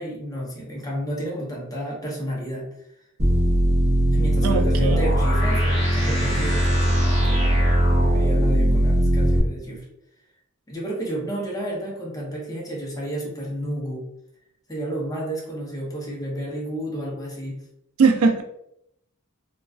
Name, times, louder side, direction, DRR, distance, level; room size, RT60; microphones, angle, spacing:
voice 1, 0.0-2.7 4.1-9.9 10.7-14.1 14.7-17.6, equal, 15° left, -3 dB, 0.6 m, -31 dB
sound 1, 3.2-9.4, equal, 30° right, 0.6 m, -19 dB
voice 2, 4.4-5.1 18.0-18.4, right 4 dB, 70° right, 4 dB, 0.3 m, -20 dB
2.3 x 2.2 x 2.3 m, 0.77 s
head